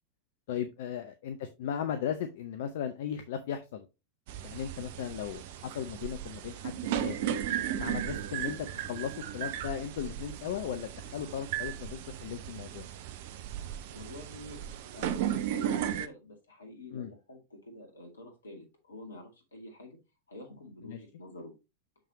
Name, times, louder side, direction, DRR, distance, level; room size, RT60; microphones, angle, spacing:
voice 1, 0.5-3.9 4.4-7.2 7.8-12.9 16.9-17.1 20.8-21.0, left 9 dB, 55° left, 9 dB, 0.7 m, -37 dB
sound 1, 4.3-16.1, right 10 dB, 50° right, 0.6 m, -35 dB
voice 2, 13.9-14.6 14.9-20.0 20.3-21.5, left 2 dB, 75° left, 3 dB, 2.1 m, -47 dB
6.6 x 6.1 x 2.9 m, 0.26 s
figure-of-eight pair, 90°, 0 cm